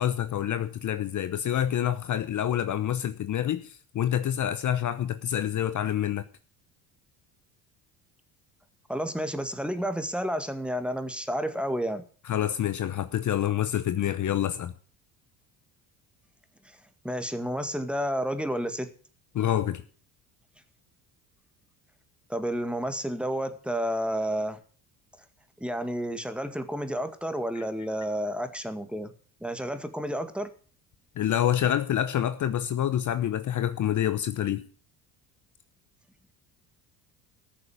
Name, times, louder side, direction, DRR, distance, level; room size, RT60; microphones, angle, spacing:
voice 1, 0.0-6.2 12.2-14.7 19.3-19.8 27.5-27.6 31.2-34.6, left 11 dB, 45° left, 0.9 m, -27 dB
voice 2, 8.9-12.0 17.0-18.9 22.3-24.6 25.6-29.1 29.4-30.5, equal, ahead, 1.9 m, -30 dB
14.0 x 6.8 x 8.6 m
supercardioid pair, 75°, 43 cm